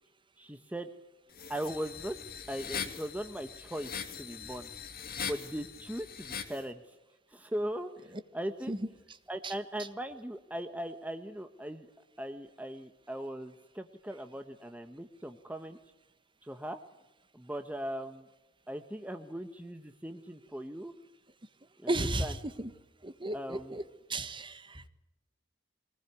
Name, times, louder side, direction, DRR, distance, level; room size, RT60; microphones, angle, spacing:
voice 1, 0.4-0.9 1.5-2.2 2.5-4.7 5.2-6.9 7.3-8.7 9.3-11.9 12.2-15.8 16.4-16.8 17.3-18.3 18.7-20.9 21.8-22.3 23.3-23.8, right 1 dB, 10° right, 7 dB, 1.1 m, -39 dB
sound 1, 1.3-6.6, left 7 dB, 50° left, 2.6 m, -41 dB
voice 2, 21.9-22.7 23.0-23.8 24.1-24.9, right 2 dB, 25° right, 11 dB, 1.4 m, -34 dB
24.0 x 20.0 x 9.5 m, 1.0 s
head